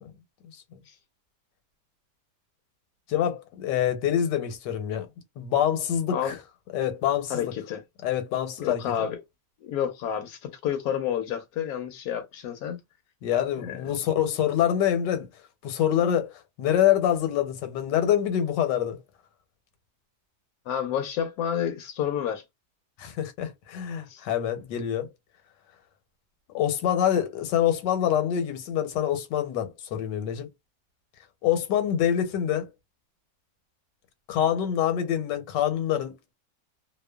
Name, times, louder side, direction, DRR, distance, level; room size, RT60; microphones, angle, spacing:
voice 1, 3.1-5.1 5.4-6.4 6.7-7.5 8.0-8.8 13.2-15.3 15.6-16.3 16.6-19.0 23.0-25.1 26.5-30.5 31.4-32.7 34.3-36.3, left 10 dB, 85° left, 1.3 m, -25 dB
voice 2, 7.3-7.8 8.6-9.2 9.6-12.8 13.6-14.0 20.7-22.4 24.1-24.2, left 9 dB, 70° left, 1.0 m, -30 dB
2.9 x 2.1 x 2.2 m
omnidirectional pair, 1.8 m